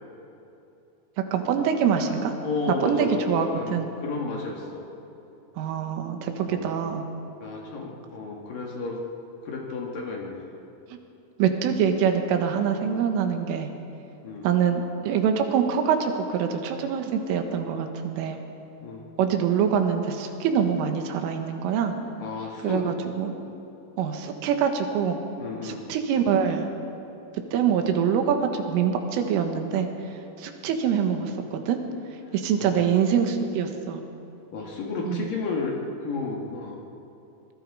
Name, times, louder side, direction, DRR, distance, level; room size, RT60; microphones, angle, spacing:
voice 1, 1.3-2.3 2.8-3.9 5.6-7.1 11.4-13.7 14.4-18.4 19.2-22.0 22.6-23.3 24.0-25.2 25.6-26.7 27.5-29.9 30.4-31.8 32.3-34.0 35.1-35.3, right 7 dB, 85° right, 5 dB, 4.0 m, -24 dB
voice 2, 2.4-4.9 6.4-6.7 7.4-9.0 9.4-10.5 14.2-14.5 18.8-19.0 22.2-22.9 25.4-25.8 32.6-32.8 34.5-36.8, left 4 dB, 55° left, -1 dB, 2.9 m, -32 dB
25.5 x 21.5 x 4.9 m, 2.8 s
omnidirectional pair, 5.6 m